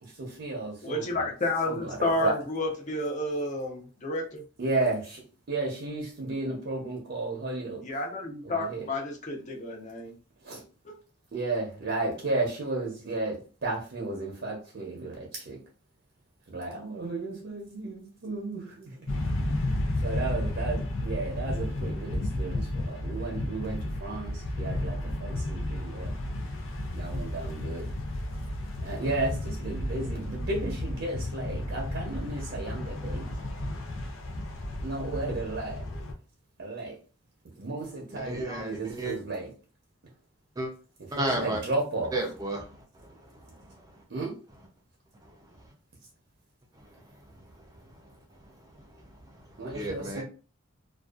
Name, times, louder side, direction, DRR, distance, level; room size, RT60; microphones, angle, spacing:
voice 1, 0.0-1.2 1.6-2.3 4.6-7.8 8.4-8.9 10.4-10.6 11.3-15.6 16.5-19.1 20.0-26.1 26.9-27.9 28.8-33.3 34.8-35.8 36.6-37.0 37.6-39.5 41.1-42.1 44.1-44.4 49.6-50.2, right 2 dB, 60° right, 0.6 m, -33 dB
voice 2, 0.8-4.4 7.8-10.1 10.8-11.0, left 2 dB, 40° left, 0.6 m, -31 dB
sound 1, 19.1-36.1, left 1 dB, 90° left, 0.6 m, -33 dB
voice 3, 38.1-39.2 40.6-40.7 41.1-41.6 42.1-43.1 43.5-43.6 49.7-50.2, right 1 dB, 20° right, 0.4 m, -32 dB
2.5 x 2.3 x 2.3 m
head